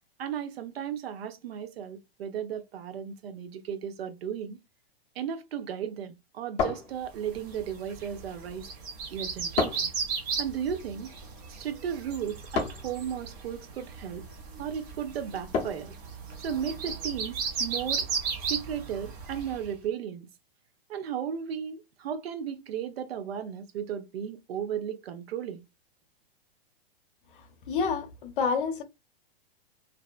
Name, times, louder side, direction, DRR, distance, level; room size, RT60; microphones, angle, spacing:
voice 1, 0.2-4.6 5.2-8.7 9.1-9.9 10.4-11.1 11.5-14.2 14.6-15.9 16.4-18.0 18.5-20.3 20.9-25.6, right 8 dB, 75° right, 0.6 m, -35 dB
sound 1, 6.6-7.5 9.6-10.0 12.5-13.0 15.5-16.0, left 5 dB, 20° left, 0.7 m, -30 dB
sound 2, 7.2-19.7, right 5 dB, 20° right, 0.3 m, -36 dB
voice 2, 27.7-28.8, left 5 dB, 60° left, 0.7 m, -28 dB
2.6 x 2.1 x 2.3 m
hypercardioid pair, 150°, 31 cm